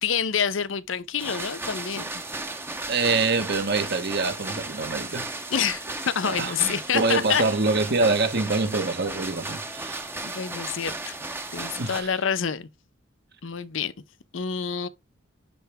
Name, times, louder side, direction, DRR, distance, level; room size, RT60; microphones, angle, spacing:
voice 1, 0.0-2.0 5.5-7.4 10.2-11.2 11.5-12.7 13.4-13.9 14.3-14.9, left 7 dB, 65° left, 0.7 m, -27 dB
sound 1, 1.2-12.0, right 2 dB, 10° right, 0.8 m, -35 dB
voice 2, 2.9-5.3 6.4-10.1 11.8-12.1, right 3 dB, 55° right, 1.3 m, -25 dB
10.0 x 3.4 x 3.5 m
head